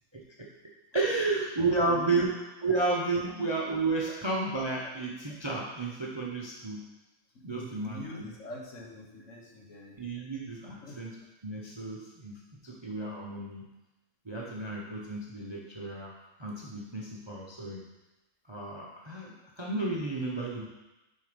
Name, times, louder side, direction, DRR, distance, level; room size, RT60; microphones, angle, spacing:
voice 1, 0.1-0.5 0.9-2.4 2.6-6.9 7.4-8.2 10.0-11.2 11.4-12.4 12.6-13.6 14.2-16.1 16.4-17.8 18.5-20.7, right 3 dB, 25° right, -3 dB, 0.6 m, -32 dB
voice 2, 1.9-2.2 3.3-3.4 4.0-4.1 4.4-4.5 7.5-10.0 10.8-11.0, left 1 dB, 60° left, 0 dB, 1.4 m, -44 dB
6.8 x 4.4 x 5.1 m, 0.99 s
omnidirectional pair, 1.6 m